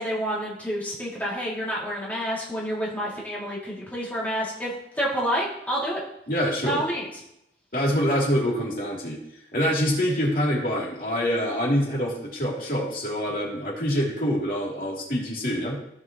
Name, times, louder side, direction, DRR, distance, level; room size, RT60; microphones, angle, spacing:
voice 1, 0.0-6.0 6.6-7.0, equal, 10° left, -7 dB, 2.5 m, -29 dB
voice 2, 6.3-6.8 7.7-9.2 9.5-15.8, equal, 50° left, -3 dB, 2.9 m, -25 dB
16.5 x 5.8 x 3.0 m, 0.80 s
head